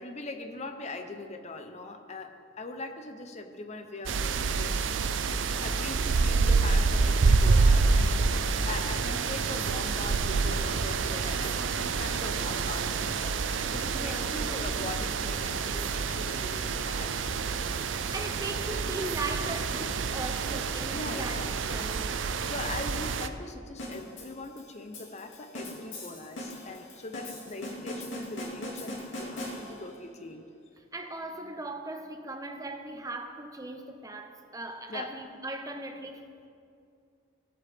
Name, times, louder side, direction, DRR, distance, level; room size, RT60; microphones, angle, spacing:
voice 1, 0.0-17.4 20.4-20.6 20.9-21.8 22.4-30.5 34.9-35.1, left 2 dB, 35° left, 6 dB, 0.7 m, -41 dB
sound 1, 4.1-23.3, right 4 dB, 85° right, 0.5 m, -27 dB
voice 2, 13.9-14.6 18.1-21.4 21.7-22.2 30.8-36.5, right 2 dB, 20° right, 5 dB, 0.7 m, -38 dB
sound 2, 23.8-30.0, left 1 dB, 85° left, 2.4 m, -40 dB
17.0 x 8.1 x 3.5 m, 2.4 s
head